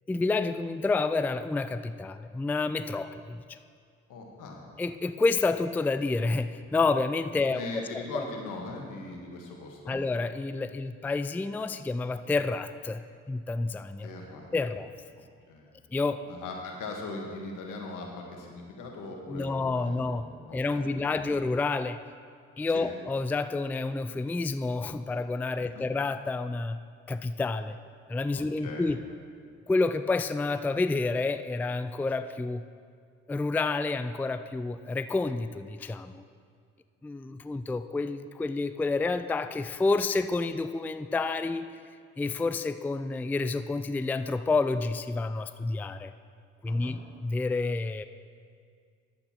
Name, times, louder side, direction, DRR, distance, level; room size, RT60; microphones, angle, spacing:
voice 1, 0.1-3.6 4.8-7.6 7.9-8.2 9.9-13.0 13.3-14.1 14.5-14.9 15.9-16.2 19.3-20.3 20.5-22.0 22.6-26.8 27.1-27.8 28.1-29.0 29.7-32.6 33.3-36.2 37.0-41.7 42.2-46.1 46.6-48.1, left 3 dB, 5° left, 11 dB, 0.3 m, -29 dB
voice 2, 4.1-4.6 7.5-10.0 14.0-14.5 15.5-15.7 16.3-21.3 22.7-22.9 25.7-25.9 28.3-28.9 46.7-47.0, left 3 dB, 80° left, 1 dB, 1.7 m, -40 dB
10.5 x 8.0 x 4.4 m, 2.1 s
supercardioid pair, 55°, 31 cm